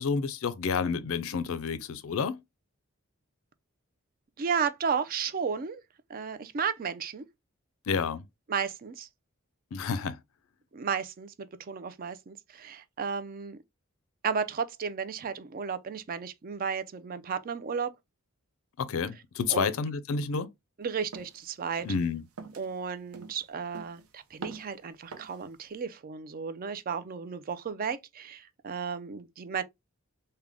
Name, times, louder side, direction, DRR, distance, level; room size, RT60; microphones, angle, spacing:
voice 1, 0.0-2.4 7.9-8.2 9.7-10.2 18.8-20.5 21.8-22.2, left 5 dB, 65° left, 0.4 m, -30 dB
voice 2, 4.4-5.8 6.1-7.2 8.5-9.1 10.7-11.3 11.6-13.6 14.2-17.9 19.5-19.7 20.8-21.8 22.6-29.6, right 6 dB, 40° right, 0.4 m, -33 dB
sound 1, 21.1-21.4 21.8-22.1 22.4-22.7 23.1-23.5 23.7-24.1 24.4-24.8 25.1-25.4, right 4 dB, 75° right, 0.7 m, -44 dB
3.6 x 2.2 x 3.3 m
head